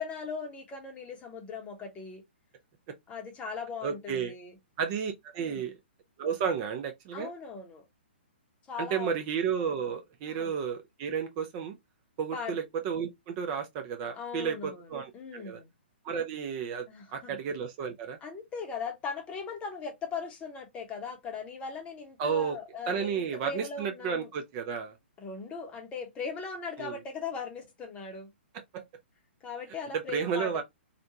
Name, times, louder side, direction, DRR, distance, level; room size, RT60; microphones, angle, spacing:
voice 1, 0.0-2.2 3.1-4.5 5.4-5.7 7.1-7.8 8.7-9.1 10.3-10.5 12.3-12.6 14.2-14.9 15.1-15.7 16.9-17.4 18.2-24.3 25.2-28.3 29.4-30.6, left 5 dB, 20° left, 0.8 m, -39 dB
voice 2, 3.8-4.3 4.8-5.8 6.2-7.3 8.8-11.8 12.2-15.6 16.0-16.9 17.1-18.2 22.2-22.6 22.9-24.9 26.8-27.0 28.7-28.8 30.1-30.6, right 7 dB, 35° right, 0.5 m, -32 dB
2.5 x 2.2 x 2.7 m
hypercardioid pair, 130°, 6 cm